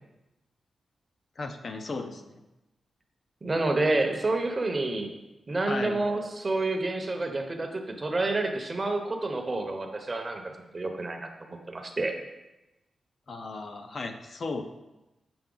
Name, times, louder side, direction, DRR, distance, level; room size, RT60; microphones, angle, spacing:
voice 1, 1.4-2.4 5.7-6.0 13.3-14.6, left 3 dB, 45° left, 6 dB, 0.5 m, -35 dB
voice 2, 3.4-5.1 5.5-12.1, right 2 dB, 25° right, 4 dB, 0.7 m, -29 dB
6.9 x 5.5 x 3.8 m, 1.0 s
wide cardioid pair, 155°, 0 cm